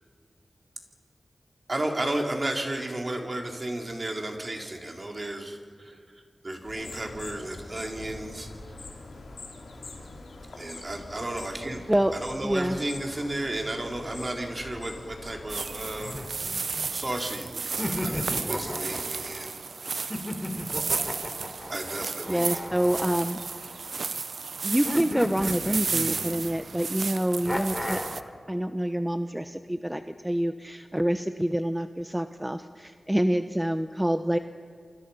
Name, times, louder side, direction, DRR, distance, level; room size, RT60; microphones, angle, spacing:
voice 1, 1.7-8.5 10.5-11.8 12.1-16.2 16.7-19.5 21.7-22.6, right 1 dB, 40° right, 2 dB, 4.0 m, -33 dB
sound 1, 6.6-16.1, left 2 dB, 85° left, 3.7 m, -44 dB
voice 2, 12.4-12.8 22.3-23.4 24.6-28.0 28.5-34.4, right 1 dB, 10° right, 9 dB, 0.9 m, -27 dB
sound 2, 15.5-28.2, right 4 dB, 80° right, 0.8 m, -33 dB
sound 3, 16.1-17.2 17.8-19.5 20.1-23.9 24.8-26.6 27.4-28.3, left 1 dB, 10° left, 3.0 m, -34 dB
29.0 x 25.0 x 5.8 m, 2.1 s
cardioid pair, 45°, 0 cm